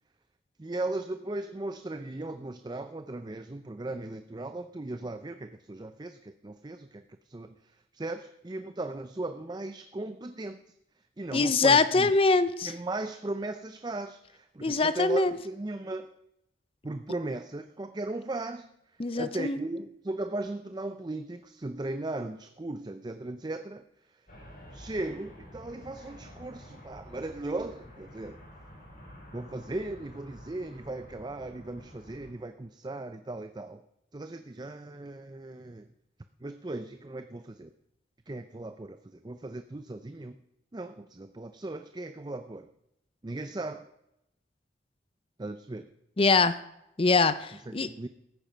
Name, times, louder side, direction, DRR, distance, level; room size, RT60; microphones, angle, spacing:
voice 1, 0.6-7.5 7.9-10.6 11.2-12.1 12.6-16.1 16.8-18.7 19.1-23.8 24.7-28.4 29.3-33.8 34.1-35.9 36.4-37.7 38.3-40.4 40.7-42.7 43.2-43.9 45.4-45.9 47.7-48.1, right 2 dB, 20° right, 9 dB, 0.5 m, -37 dB
voice 2, 11.3-12.7 14.6-15.3 19.0-19.6 46.2-46.6 47.0-47.9, left 3 dB, 30° left, 14 dB, 0.5 m, -23 dB
sound 1, 24.3-32.3, equal, 50° left, 4.0 m, -50 dB
14.5 x 8.9 x 5.6 m, 0.83 s
head